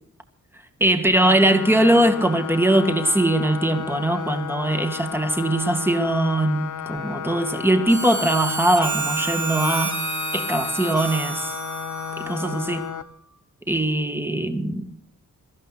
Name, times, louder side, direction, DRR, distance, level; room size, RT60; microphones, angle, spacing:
voice 1, 0.8-10.0 10.3-11.5 12.2-12.9 13.7-14.9, right 1 dB, 5° right, 2.0 m, -21 dB
sound 1, 1.1-13.0, left 8 dB, 55° left, 1.1 m, -33 dB
Harmonica, 7.9-13.1, right 4 dB, 55° right, 3.7 m, -30 dB
23.0 x 14.0 x 4.2 m
wide cardioid pair, 110°, 35 cm